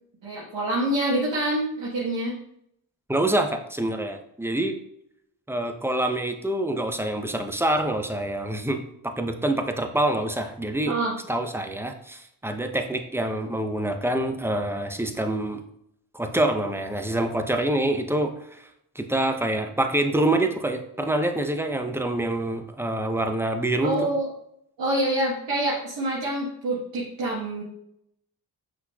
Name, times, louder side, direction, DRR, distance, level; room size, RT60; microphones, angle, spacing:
voice 1, 0.2-2.4 10.8-11.1 23.8-24.3 24.8-27.6, right 1 dB, 70° right, -7 dB, 1.4 m, -26 dB
voice 2, 3.1-4.8 5.5-10.9 11.3-15.6 16.1-18.7 18.9-24.0, right 1 dB, 5° right, 6 dB, 0.6 m, -26 dB
5.6 x 4.0 x 2.3 m, 0.74 s
supercardioid pair, 45°, 45 cm